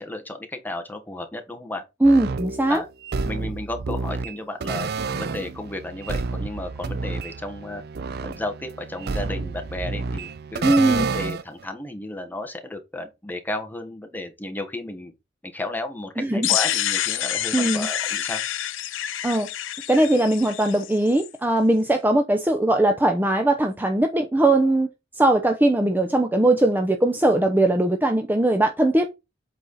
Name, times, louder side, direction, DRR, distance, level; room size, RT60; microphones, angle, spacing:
voice 1, 0.0-1.8 2.7-2.9 3.2-7.8 8.2-15.1 15.4-18.4, left 2 dB, 10° left, 1.3 m, -33 dB
voice 2, 2.0-2.8 10.6-11.1 16.2-16.5 17.5-17.9 19.2-19.5 19.9-24.9 25.2-29.1, right 1 dB, 10° right, 0.7 m, -20 dB
sound 1, 2.0-11.6, right 4 dB, 55° right, 0.5 m, -30 dB
sound 2, 16.4-21.3, left 12 dB, 90° left, 0.7 m, -27 dB
8.0 x 4.2 x 4.1 m
head